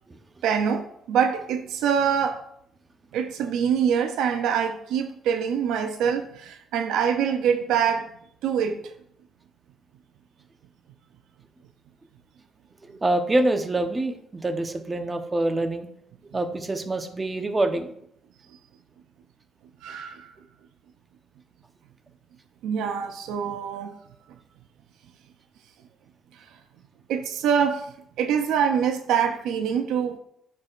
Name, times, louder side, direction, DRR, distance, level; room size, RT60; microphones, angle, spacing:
voice 1, 0.4-2.4 3.1-8.1 8.4-8.9 19.8-20.3 22.6-24.0 27.1-27.9 28.2-30.2, right 7 dB, 90° right, 0.6 m, -24 dB
voice 2, 13.0-15.9 16.3-17.9, right 2 dB, 25° right, 0.9 m, -25 dB
12.0 x 4.7 x 2.5 m
cardioid pair, 90°, 0 cm